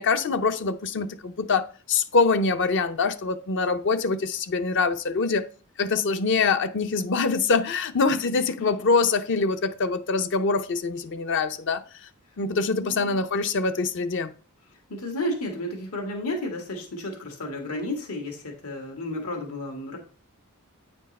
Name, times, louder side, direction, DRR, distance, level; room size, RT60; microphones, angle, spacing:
voice 1, 0.0-5.4 5.8-12.1 12.4-14.3, left 4 dB, 60° left, 0.6 m, -24 dB
voice 2, 12.7-13.2 14.9-20.0, left 1 dB, 85° left, 1.9 m, -32 dB
9.0 x 4.4 x 4.1 m
head